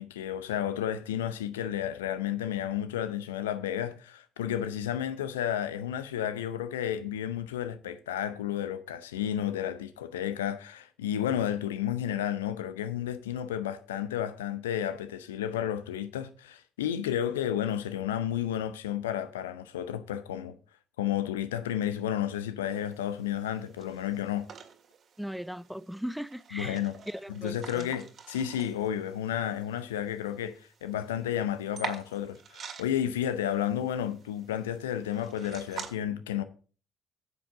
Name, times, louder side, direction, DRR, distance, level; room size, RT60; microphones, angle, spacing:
voice 1, 0.0-20.5 21.0-24.5 26.5-26.9 27.3-30.5 30.8-36.4, left 10 dB, 75° left, 0.7 m, -32 dB
sound 1, 22.7-35.9, right 6 dB, 45° right, 1.9 m, -47 dB
voice 2, 25.2-26.8 27.1-27.9, equal, ahead, 0.4 m, -38 dB
9.8 x 8.3 x 3.8 m
figure-of-eight pair, 50°, 0 cm